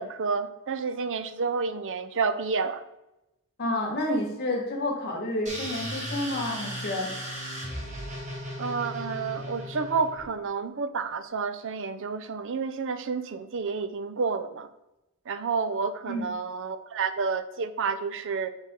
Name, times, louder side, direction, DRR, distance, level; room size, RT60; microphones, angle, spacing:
voice 1, 0.0-2.8 8.6-14.7 15.3-18.5, right 5 dB, 60° right, 11 dB, 0.6 m, -30 dB
voice 2, 3.6-7.1 16.1-16.3, left 1 dB, 50° left, -2 dB, 2.3 m, -29 dB
sound 1, 5.5-10.2, equal, 35° right, 2.0 m, -36 dB
8.2 x 4.9 x 3.8 m, 0.92 s
head